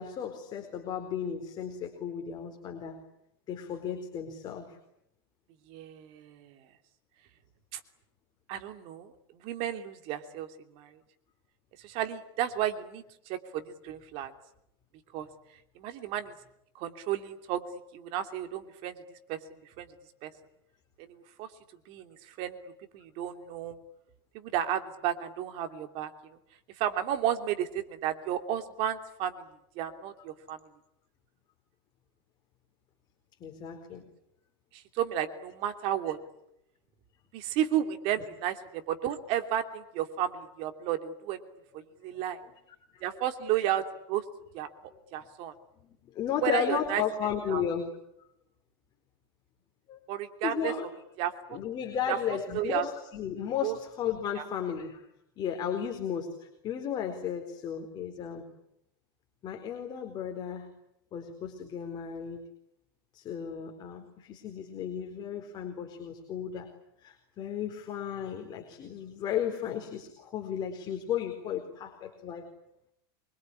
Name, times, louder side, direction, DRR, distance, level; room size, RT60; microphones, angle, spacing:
voice 1, 0.0-3.0 3.5-4.8 33.4-34.0 42.9-43.2 45.8-47.9 49.9-50.0 50.4-50.9 51.5-55.0 55.4-58.4 59.4-60.7 61.1-62.4 63.1-66.7 67.0-72.5, left 8 dB, 35° left, 4 dB, 4.2 m, -34 dB
voice 2, 5.7-6.6 7.7-7.8 8.5-9.1 9.4-10.5 10.7-10.9 11.8-14.3 15.1-15.3 15.8-16.3 16.7-17.6 17.9-18.9 19.3-19.4 19.8-19.9 20.2-20.3 21.0-21.5 21.9-22.6 22.9-23.8 24.3-26.1 26.8-29.4 29.7-30.6 34.7-36.2 37.3-41.4 41.7-42.4 43.0-44.2 44.5-44.7 45.1-45.5 46.4-47.0 47.5-47.6 50.1-50.7 51.2-51.6 52.1-52.2 52.5-52.9 53.6-53.8 54.4-54.5, right 11 dB, 50° right, 7 dB, 3.0 m, -32 dB
25.5 x 23.5 x 9.9 m, 0.79 s
supercardioid pair, 140°, 13 cm